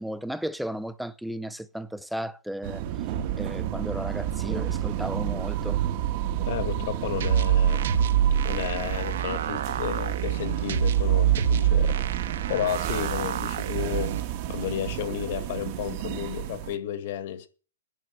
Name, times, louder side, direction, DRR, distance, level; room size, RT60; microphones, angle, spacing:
voice 1, 0.0-2.8 3.4-5.8, equal, ahead, 0.5 m, -34 dB
sound 1, 2.6-16.8, right 11 dB, 35° right, 1.2 m, -31 dB
voice 2, 6.5-7.9 8.4-12.2 12.5-14.2 14.5-17.5, left 10 dB, 45° left, 1.9 m, -32 dB
sound 2, 7.2-14.2, right 9 dB, 60° right, 1.2 m, -25 dB
11.0 x 7.0 x 9.2 m
hypercardioid pair, 165°, 0 cm